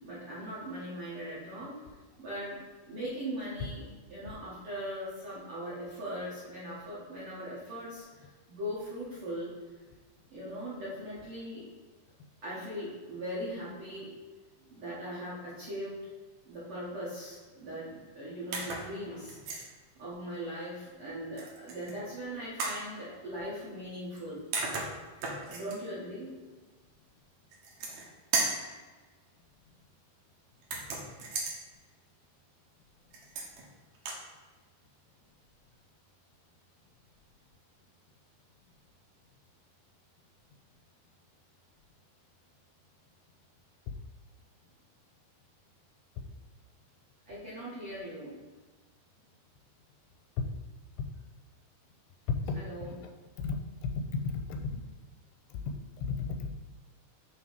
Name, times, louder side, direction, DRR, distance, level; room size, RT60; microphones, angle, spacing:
voice 1, 0.0-1.9 2.2-9.6 10.3-11.7 12.4-14.2 14.6-16.1 16.4-19.7 20.0-24.4 25.4-26.4 47.3-48.4 52.5-53.0, equal, 55° right, -10 dB, 1.7 m, -40 dB
sound 1, 18.5-18.9 19.3-19.7 21.4-21.9 22.6-22.8 24.2-24.3 24.5-25.8 27.5-28.1 28.3-28.7 30.6-31.6 33.1-33.6 33.9-34.2, right 3 dB, 70° right, 1.6 m, -34 dB
voice 2, 52.3-52.6 53.4-53.6 53.8-54.6 55.6-55.7 56.1-56.5, left 5 dB, 85° left, 4 dB, 2.6 m, -32 dB
7.3 x 3.4 x 4.7 m, 1.3 s
omnidirectional pair, 4.6 m